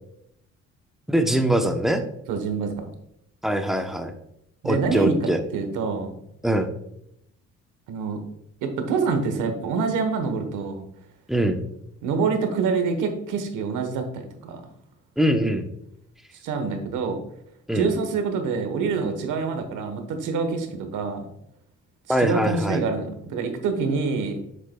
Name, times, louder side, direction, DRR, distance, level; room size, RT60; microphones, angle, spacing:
voice 1, 1.1-2.0 3.4-4.1 4.6-5.4 6.4-6.7 11.3-11.6 15.2-15.7 17.7-17.9 22.1-22.8, right 1 dB, ahead, 6 dB, 0.8 m, -22 dB
voice 2, 2.3-2.7 4.6-5.1 5.5-6.1 7.9-8.2 8.6-10.9 12.0-14.6 16.4-17.2 17.7-21.3 22.1-24.4, right 4 dB, 85° right, 6 dB, 1.2 m, -26 dB
7.4 x 6.7 x 2.3 m, 0.77 s
cardioid pair, 90°, 30 cm